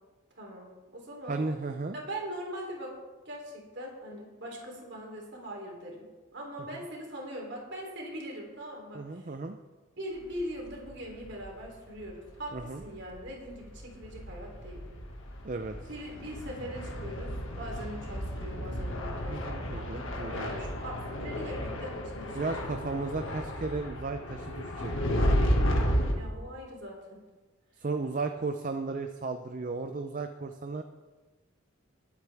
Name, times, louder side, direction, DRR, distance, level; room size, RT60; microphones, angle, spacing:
voice 1, 0.3-0.7 0.9-1.4 1.9-3.0 3.2-6.1 6.3-9.3 10.0-14.8 15.9-22.5 26.1-27.2, equal, 55° right, -1 dB, 3.2 m, -41 dB
voice 2, 1.3-2.0 6.7-6.8 8.9-9.6 12.5-12.8 15.4-15.8 19.3-20.6 22.4-25.4 27.8-30.8, right 3 dB, 40° right, 6 dB, 0.5 m, -35 dB
sound 1, 10.3-11.7 12.0-12.1 12.4-26.1, equal, 70° left, 1.8 m, -33 dB
20.5 x 8.2 x 3.5 m, 1.3 s
head